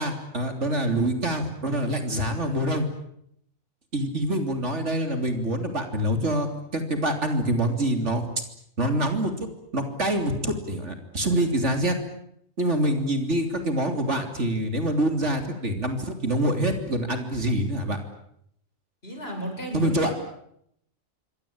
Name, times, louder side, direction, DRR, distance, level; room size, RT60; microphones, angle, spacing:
voice 1, 0.0-2.9 3.9-6.5 6.7-8.2 8.8-9.5 9.7-12.0 12.6-18.0 19.7-20.1, right 1 dB, 60° right, 6 dB, 3.7 m, -25 dB
voice 2, 19.0-20.1, equal, 45° left, 3 dB, 8.1 m, -34 dB
27.0 x 22.5 x 8.8 m, 0.73 s
omnidirectional pair, 1.4 m